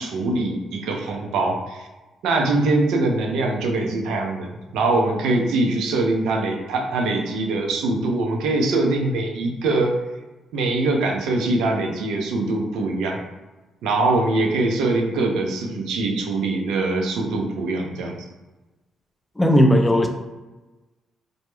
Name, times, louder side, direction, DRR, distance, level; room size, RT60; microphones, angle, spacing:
voice 1, 0.0-1.9 2.2-9.9 10.5-13.2 13.8-18.2, right 2 dB, 85° right, 2 dB, 0.4 m, -23 dB
voice 2, 19.4-20.1, equal, 10° left, 3 dB, 0.3 m, -16 dB
2.2 x 2.0 x 3.0 m, 1.1 s
cardioid pair, 90°, 0 cm